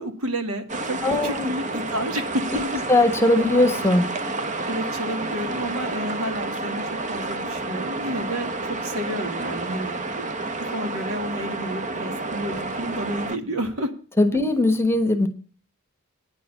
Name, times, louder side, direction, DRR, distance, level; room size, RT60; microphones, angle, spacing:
voice 1, 0.0-2.8 4.7-10.3 10.6-13.9, equal, 70° right, 6 dB, 2.0 m, -30 dB
sound 1, 0.7-13.4, right 2 dB, 35° right, 0.9 m, -30 dB
voice 2, 1.0-1.5 2.5-2.6 2.9-4.1 14.2-15.3, left 2 dB, 10° left, 8 dB, 1.2 m, -19 dB
9.8 x 6.9 x 9.0 m, 0.39 s
head